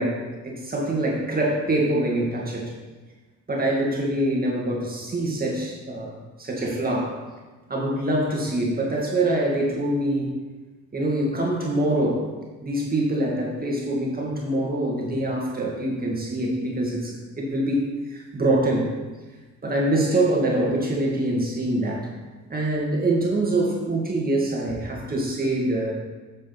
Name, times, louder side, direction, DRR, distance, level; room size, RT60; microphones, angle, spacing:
voice 1, 0.0-2.7 3.5-7.2 7.7-10.4 10.9-12.3 12.6-18.9 19.6-22.1 22.5-25.9, right 1 dB, 30° right, -3 dB, 2.1 m, -24 dB
8.8 x 6.5 x 4.0 m, 1.3 s
cardioid pair, 90°, 30 cm